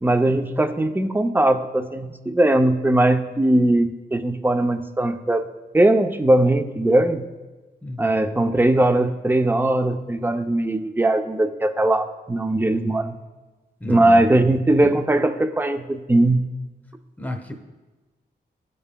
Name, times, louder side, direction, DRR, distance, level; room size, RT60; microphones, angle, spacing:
voice 1, 0.0-5.5 5.7-7.3 8.0-13.2 13.9-16.4, right 1 dB, 10° right, 9 dB, 0.5 m, -20 dB
voice 2, 13.8-14.2 17.2-17.5, left 1 dB, 10° left, 3 dB, 1.0 m, -32 dB
13.5 x 5.3 x 2.2 m, 1.2 s
cardioid pair, 70°, 19 cm